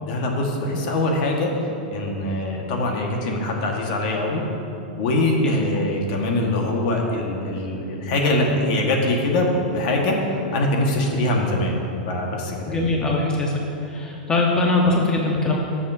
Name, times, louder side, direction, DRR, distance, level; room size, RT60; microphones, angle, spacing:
voice 1, 0.0-4.4 4.9-11.8 12.0-12.8, left 1 dB, 60° left, 1 dB, 1.5 m, -23 dB
voice 2, 12.7-15.6, left 2 dB, 15° left, -1 dB, 1.0 m, -21 dB
13.0 x 7.2 x 2.7 m, 2.7 s
hypercardioid pair, 130°, 5 cm